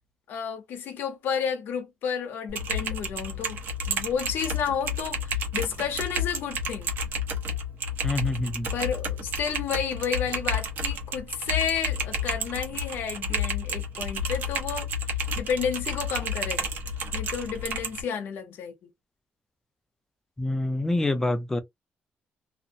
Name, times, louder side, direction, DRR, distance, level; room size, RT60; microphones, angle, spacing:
voice 1, 0.3-3.6 3.9-6.9 8.7-14.9 15.3-16.7 17.1-18.7, left 7 dB, 90° left, 0.8 m, -31 dB
Typing, 2.5-18.0, left 1 dB, 65° right, 0.8 m, -31 dB
voice 2, 8.0-8.7 20.4-21.6, left 2 dB, 10° left, 0.5 m, -26 dB
2.5 x 2.1 x 2.7 m
cardioid pair, 160°, 4 cm